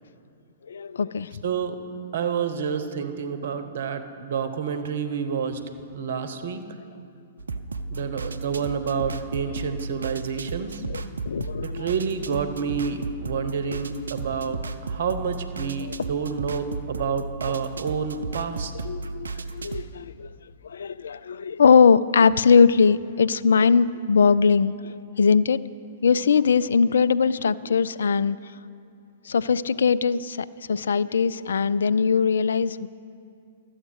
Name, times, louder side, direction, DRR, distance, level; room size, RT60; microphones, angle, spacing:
voice 1, 0.7-1.3 10.8-11.9 15.8-16.0 18.8-20.3 20.6-25.6 26.0-28.4 29.3-32.9, left 5 dB, 75° left, 17 dB, 0.3 m, -21 dB
voice 2, 1.4-1.8 2.1-6.6 7.9-10.8 11.6-18.7, right 6 dB, 65° right, 10 dB, 0.9 m, -29 dB
sound 1, 7.4-19.9, right 3 dB, 80° right, 0.5 m, -34 dB
12.5 x 7.9 x 6.4 m, 2.4 s
hypercardioid pair, 115°, 0 cm